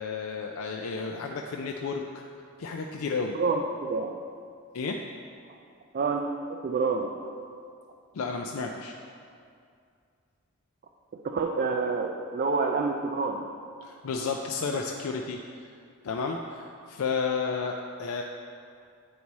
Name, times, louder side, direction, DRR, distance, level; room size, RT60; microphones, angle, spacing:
voice 1, 0.0-2.2 2.6-3.4 4.7-5.0 8.1-8.9 13.8-15.7 16.0-18.2, left 4 dB, 70° left, 2 dB, 0.4 m, -32 dB
voice 2, 3.3-4.1 5.9-7.3 11.2-13.4, right 4 dB, 40° right, 2 dB, 0.3 m, -28 dB
8.6 x 4.7 x 4.1 m, 2.3 s
head